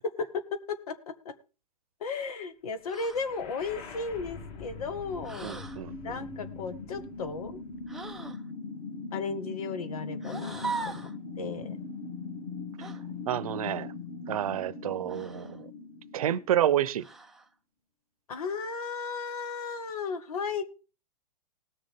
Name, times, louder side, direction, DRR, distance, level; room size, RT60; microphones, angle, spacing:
voice 1, 0.7-1.3 2.0-5.5 6.0-7.6 9.1-11.8 18.3-20.6, left 4 dB, 70° left, 11 dB, 2.0 m, -35 dB
sound 1, 2.9-3.3 5.2-5.8 7.9-8.4 10.2-11.2 12.8-13.0 15.1-15.6 17.0-17.5, right 4 dB, ahead, 0.6 m, -39 dB
sound 2, 3.0-17.0, left 4 dB, 35° left, 3.0 m, -41 dB
voice 2, 5.4-6.2 13.3-13.9 14.3-15.7 16.1-17.1, right 11 dB, 65° right, 19 dB, 0.8 m, -29 dB
19.5 x 6.7 x 3.7 m, 0.34 s
hypercardioid pair, 145°, 20 cm